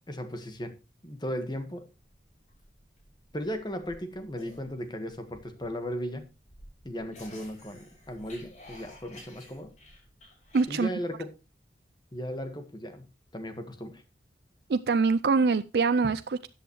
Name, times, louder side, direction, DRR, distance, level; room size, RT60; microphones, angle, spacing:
voice 1, 0.1-0.7 1.0-1.9 3.3-6.2 6.8-9.7 10.7-11.3 12.1-13.1 13.3-14.0, equal, 25° left, 8 dB, 1.5 m, -36 dB
sound 1, 2.0-10.6, left 1 dB, 40° left, 5.5 m, -52 dB
voice 2, 10.5-10.9 14.7-16.5, right 4 dB, 65° right, 11 dB, 0.4 m, -24 dB
14.0 x 8.2 x 3.1 m, 0.29 s
head